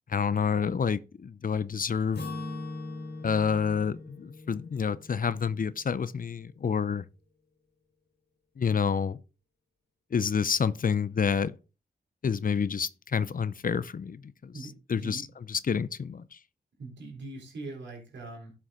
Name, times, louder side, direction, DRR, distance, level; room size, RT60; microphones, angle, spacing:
voice 1, 0.1-2.2 3.2-7.0 8.6-9.2 10.1-11.5 12.2-14.5 14.9-15.2 15.5-16.3, left 6 dB, 50° left, 0.7 m, -28 dB
Acoustic guitar / Strum, 2.1-6.1, left 2 dB, 70° left, 3.2 m, -41 dB
voice 2, 14.5-15.3 16.8-18.5, right 2 dB, 85° right, 3.6 m, -42 dB
11.5 x 6.0 x 3.8 m
cardioid pair, 50°, 18 cm